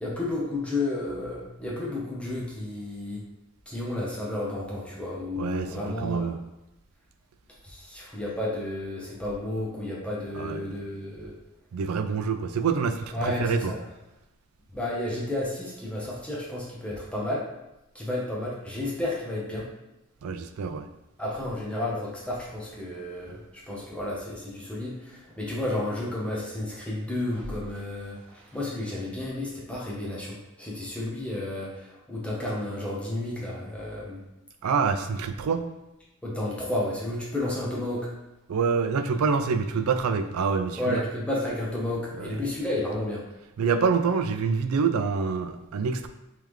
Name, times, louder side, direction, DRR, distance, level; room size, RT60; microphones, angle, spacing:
voice 1, 0.0-3.2 3.7-6.3 7.6-11.3 13.1-13.8 14.7-17.5 17.9-19.7 21.2-34.2 36.2-38.1 40.8-43.2, left 1 dB, 5° left, -5 dB, 0.8 m, -32 dB
voice 2, 5.4-6.4 10.3-10.7 11.7-13.7 20.2-20.9 34.6-35.7 38.5-41.0 42.2-42.3 43.6-46.1, right 5 dB, 80° right, 9 dB, 0.4 m, -26 dB
3.6 x 3.3 x 3.1 m, 0.94 s
head